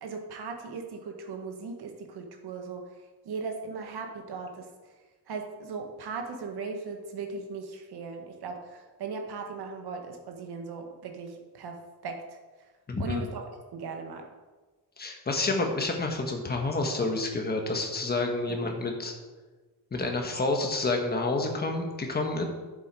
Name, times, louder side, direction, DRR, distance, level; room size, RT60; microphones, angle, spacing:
voice 1, 0.0-2.9 3.2-4.7 5.3-8.6 9.0-11.8 12.0-12.2 13.0-13.4 13.7-14.3 18.5-18.7, right 4 dB, 70° right, 4 dB, 1.7 m, -38 dB
voice 2, 12.9-13.2 15.0-19.1 19.9-22.4, left 2 dB, 25° left, 2 dB, 1.5 m, -29 dB
11.0 x 7.6 x 4.8 m, 1.3 s
wide cardioid pair, 165°, 40 cm